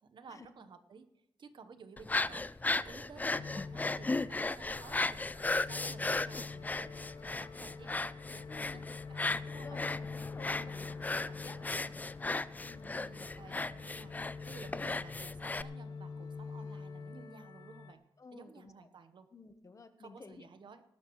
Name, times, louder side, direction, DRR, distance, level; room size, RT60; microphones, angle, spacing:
voice 1, 0.0-1.1 1.4-5.2 5.7-7.0 7.2-8.7 9.1-9.8 10.5-12.0 12.8-14.1 14.4-18.0 18.3-19.3 20.0-20.8, right 5 dB, 70° right, 10 dB, 1.0 m, -55 dB
sound 1, 2.0-15.6, left 3 dB, 20° left, 0.4 m, -36 dB
sound 2, 3.3-17.9, left 4 dB, 80° left, 1.3 m, -46 dB
voice 2, 8.5-8.9 9.4-9.9 10.2-11.0 11.3-11.6 12.6-13.0 18.2-18.9 19.3-20.5, left 3 dB, 40° left, 10 dB, 1.0 m, -53 dB
sound 3, 13.4-18.0, left 3 dB, 55° left, 4.3 m, -70 dB
18.5 x 12.5 x 3.1 m, 0.85 s
cardioid pair, 80°, 8 cm